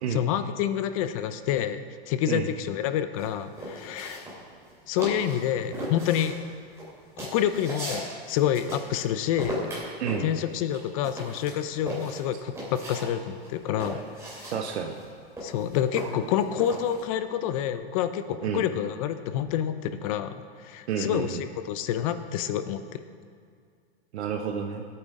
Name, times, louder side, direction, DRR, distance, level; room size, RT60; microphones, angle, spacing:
voice 1, 0.1-1.8 2.1-4.2 4.9-6.4 7.2-9.6 10.2-14.0 14.4-14.5 15.4-23.0, left 10 dB, 35° left, 11 dB, 0.5 m, -28 dB
sound 1, 3.2-4.7 5.0-5.5 5.7-9.1 9.4-13.1 13.4-17.0, equal, 10° right, 3.4 m, -37 dB
voice 2, 14.5-15.0 18.4-18.6 20.9-21.4 24.1-24.8, right 7 dB, 80° right, 3 dB, 1.0 m, -30 dB
17.5 x 8.9 x 3.7 m, 2.2 s
supercardioid pair, 160°, 33 cm